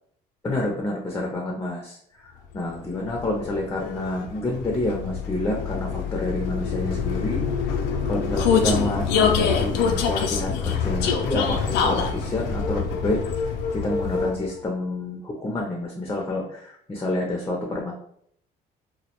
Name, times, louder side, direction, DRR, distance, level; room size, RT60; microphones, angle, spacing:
voice 1, 0.4-7.5 8.1-17.9, left 1 dB, 15° left, -1 dB, 0.4 m, -28 dB
Vehicle, 2.7-14.6, left 6 dB, 80° left, 0.4 m, -25 dB
2.2 x 2.0 x 2.8 m, 0.66 s
cardioid pair, 110°, 17 cm